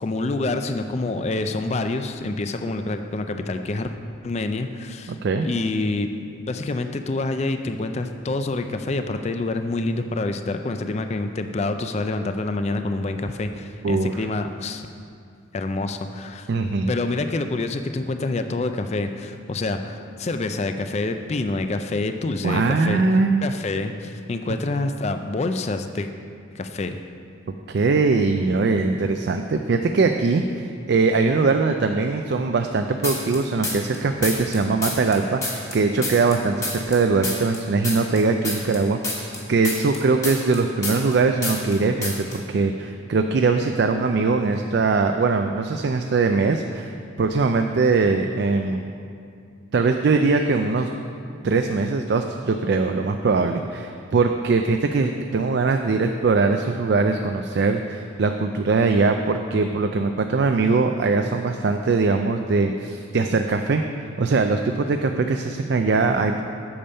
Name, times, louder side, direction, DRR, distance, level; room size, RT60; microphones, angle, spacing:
voice 1, 0.0-3.9 4.2-5.2 5.4-6.1 6.5-14.9 15.5-16.5 16.9-23.0 23.4-26.1 26.5-27.0, left 2 dB, 35° left, 7 dB, 0.4 m, -27 dB
voice 2, 5.1-5.5 13.8-14.3 16.5-16.9 22.4-23.5 27.7-46.9 47.2-48.8 49.7-50.9 51.4-66.4, right 4 dB, 55° right, 5 dB, 0.4 m, -21 dB
sound 1, 33.0-34.0 34.2-37.0 37.2-41.2 41.4-41.8 42.0-42.4, left 2 dB, 15° left, 1.3 m, -28 dB
8.6 x 7.0 x 5.4 m, 2.4 s
head